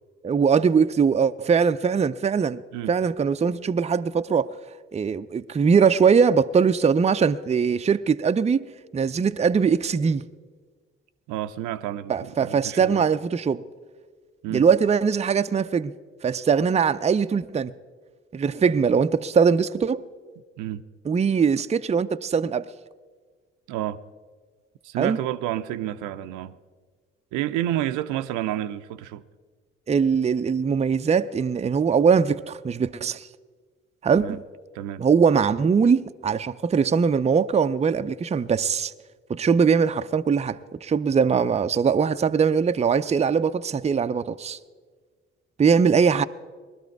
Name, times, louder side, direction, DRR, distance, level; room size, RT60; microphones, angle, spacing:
voice 1, 0.2-2.6 2.9-4.6 4.9-8.6 8.9-10.2 12.1-13.6 14.5-15.9 16.2-17.7 18.3-20.0 21.1-22.7 25.0-25.2 29.9-33.3 34.0-34.4 35.0-38.9 39.3-44.6 45.6-46.2, right 6 dB, 20° right, 0.5 m, -21 dB
voice 2, 11.3-13.1 14.4-14.7 18.7-18.8 20.6-20.8 23.7-24.0 24.8-26.6 27.3-29.2 34.1-34.4 34.7-35.1, right 13 dB, 70° right, 0.6 m, -30 dB
20.0 x 12.5 x 4.7 m
hypercardioid pair, 45°, 31 cm